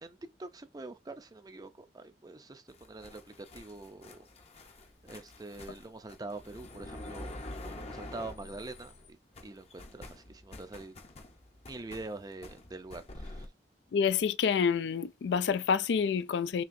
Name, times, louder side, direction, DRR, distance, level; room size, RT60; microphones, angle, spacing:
voice 1, 0.0-4.3 5.0-7.3 7.6-9.2 9.4-10.9 11.7-13.5, right 2 dB, 20° right, 0.4 m, -45 dB
sound 1, 2.7-9.1 9.3-13.5, left 2 dB, 35° left, 0.6 m, -47 dB
voice 2, 13.9-16.6, left 6 dB, 75° left, 0.3 m, -28 dB
5.7 x 2.7 x 2.6 m
head